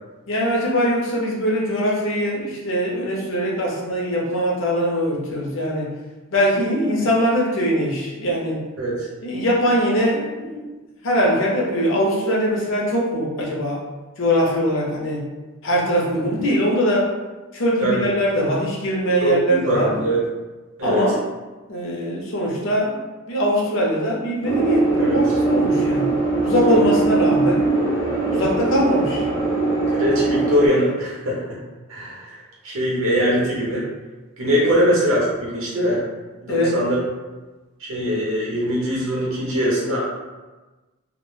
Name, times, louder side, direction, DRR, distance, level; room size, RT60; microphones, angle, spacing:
voice 1, 0.3-5.9 6.3-8.6 9.2-10.6 11.0-13.8 14.2-15.2 15.6-17.1 17.5-20.0 20.8-21.2 21.7-23.0 23.3-27.6 28.3-29.2 34.6-34.9 36.5-36.7, equal, 65° left, -3 dB, 0.6 m, -21 dB
voice 2, 19.2-20.2 20.8-21.0 25.0-25.2 26.6-26.8 29.9-31.6 31.9-32.4 32.6-33.8 34.4-36.0 36.4-37.0 37.9-40.0, equal, 80° right, -5 dB, 0.7 m, -22 dB
sound 1, 24.4-30.7, right 3 dB, 15° left, 0.5 m, -21 dB
2.1 x 2.1 x 3.1 m, 1.2 s
head